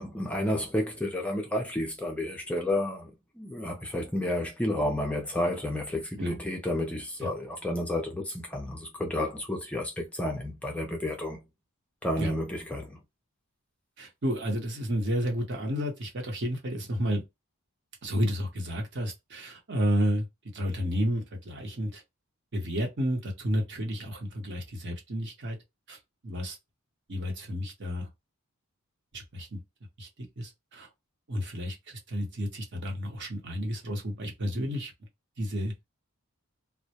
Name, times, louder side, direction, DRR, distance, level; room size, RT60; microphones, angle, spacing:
voice 1, 0.0-3.1 3.4-11.4 12.0-13.0, left 1 dB, 5° left, 0.4 m, -31 dB
voice 2, 14.0-17.2 18.0-20.3 20.5-22.0 22.5-25.6 25.9-26.0 26.2-26.6 27.1-28.1 29.1-29.6 30.0-30.1 30.4-30.9 31.3-34.9 35.4-35.7, equal, 55° right, 0.8 m, -31 dB
2.1 x 2.0 x 2.8 m
head